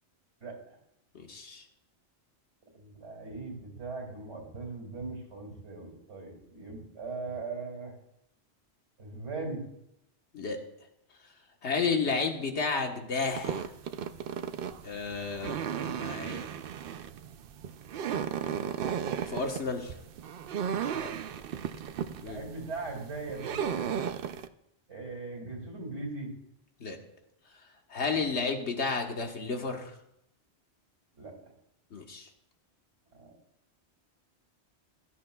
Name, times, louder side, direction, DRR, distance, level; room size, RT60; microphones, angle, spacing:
voice 1, 0.4-0.8 2.7-7.9 9.0-9.6 20.9-21.1 22.2-24.1 24.9-26.3 28.0-28.3 31.2-31.4 33.1-33.3, right 3 dB, 85° right, 0 dB, 2.7 m, -40 dB
voice 2, 1.1-1.6 10.3-10.6 11.6-13.7 14.8-16.5 19.3-19.9 22.2-22.4 26.8-27.0 27.9-29.9 31.9-32.3, left 4 dB, 80° left, 3 dB, 1.6 m, -32 dB
sound 1, 13.3-24.5, right 8 dB, 65° right, 0.7 m, -35 dB
16.0 x 13.0 x 2.3 m, 0.78 s
omnidirectional pair, 1.1 m